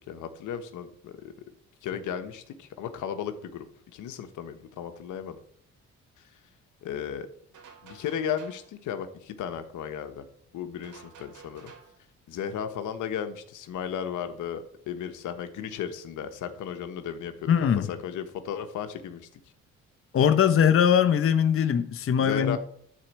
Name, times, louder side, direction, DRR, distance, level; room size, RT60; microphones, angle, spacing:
voice 1, 0.0-1.3 1.8-3.7 3.9-5.4 6.8-7.3 7.8-10.2 10.5-11.7 12.3-17.5 17.9-19.3 22.2-22.6, left 8 dB, 85° left, 1.2 m, -35 dB
sound 1, 7.5-8.7 10.8-12.0, right 6 dB, 80° right, 3.1 m, -51 dB
voice 2, 17.5-17.9 20.1-22.6, left 8 dB, 45° left, 0.9 m, -21 dB
12.5 x 4.5 x 7.4 m
cardioid pair, 90°, 30 cm